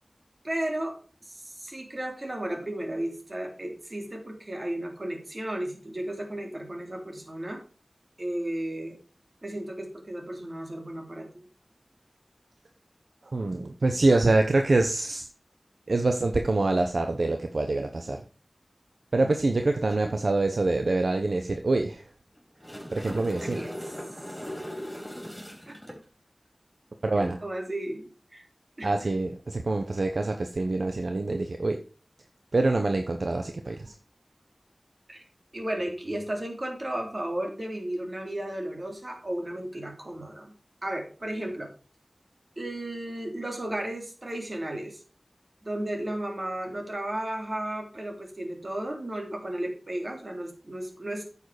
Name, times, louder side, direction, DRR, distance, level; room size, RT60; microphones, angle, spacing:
voice 1, 0.4-1.0 1.3-7.6 8.2-9.0 9.4-11.5 20.0-20.1 23.4-23.7 25.7-25.8 27.4-28.4 28.8-29.1 35.1-35.2 35.5-40.5 40.8-41.7 42.6-45.0 45.6-51.2, right 1 dB, 50° right, 2 dB, 3.5 m, -34 dB
voice 2, 13.3-15.2 15.9-18.2 19.1-22.0 22.9-23.6 27.0-27.4 28.8-31.8 32.5-33.9, right 2 dB, 75° right, 5 dB, 0.9 m, -25 dB
sound 1, 22.4-26.0 29.8-30.0, equal, 10° left, 3.8 m, -39 dB
9.4 x 7.0 x 4.9 m, 0.37 s
wide cardioid pair, 55°, 0 cm